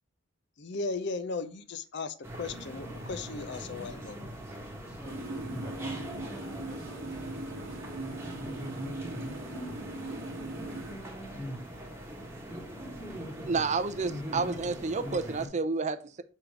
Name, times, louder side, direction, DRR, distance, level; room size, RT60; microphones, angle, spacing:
voice 1, 0.6-4.2, left 4 dB, 60° left, 0.6 m, -36 dB
sound 1, 2.2-15.5, equal, 15° right, 1.1 m, -41 dB
voice 2, 4.8-7.8 8.0-8.8, left 1 dB, 20° left, 1.4 m, -50 dB
sound 2, 5.0-10.9, right 2 dB, 85° right, 1.0 m, -40 dB
voice 3, 13.5-16.2, right 4 dB, 35° right, 0.5 m, -30 dB
6.4 x 3.9 x 4.5 m
head